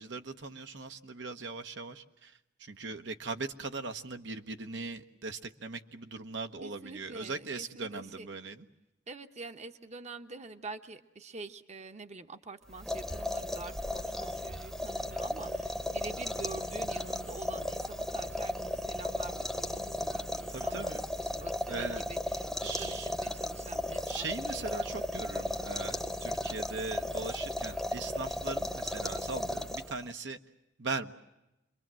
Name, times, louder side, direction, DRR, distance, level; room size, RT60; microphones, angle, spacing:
voice 1, 0.0-2.3 2.6-8.7 20.5-21.0 21.7-22.1 22.6-23.1 24.1-30.4 30.8-31.1, right 3 dB, 75° right, 6 dB, 1.2 m, -39 dB
voice 2, 6.6-8.3 9.1-24.9, right 3 dB, 40° right, 7 dB, 1.0 m, -46 dB
sound 1, 12.7-30.1, left 1 dB, ahead, 0.9 m, -35 dB
28.0 x 23.0 x 7.6 m, 0.94 s
head